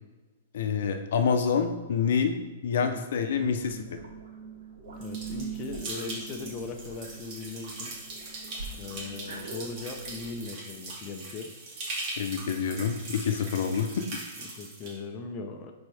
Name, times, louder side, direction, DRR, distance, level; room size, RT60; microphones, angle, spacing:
voice 1, 0.5-2.4 2.6-4.0 12.2-13.9, left 6 dB, 65° left, 6 dB, 0.8 m, -27 dB
sound 1, 3.3-10.3, right 5 dB, 75° right, 2.6 m, -43 dB
voice 2, 5.0-7.9 8.7-11.5 14.4-15.7, left 4 dB, 25° left, 3 dB, 0.8 m, -39 dB
sound 2, 5.0-14.9, right 2 dB, 35° right, 2.3 m, -40 dB
10.5 x 4.5 x 3.5 m, 1.2 s
hypercardioid pair, 155°, 0 cm